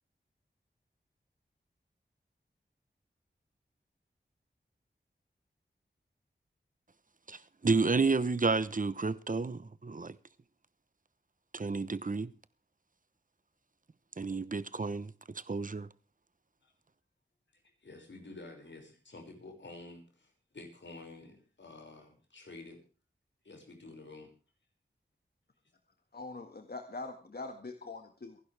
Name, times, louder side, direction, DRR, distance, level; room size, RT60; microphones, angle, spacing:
voice 1, 7.3-10.2 11.5-12.3 14.2-15.9, right 4 dB, 45° right, 0.9 m, -31 dB
voice 2, 17.8-22.8 23.4-24.3, left 2 dB, 80° left, 5.9 m, -50 dB
voice 3, 26.1-28.4, left 3 dB, 55° left, 1.8 m, -43 dB
27.5 x 11.5 x 3.4 m
wide cardioid pair, 60°, 19 cm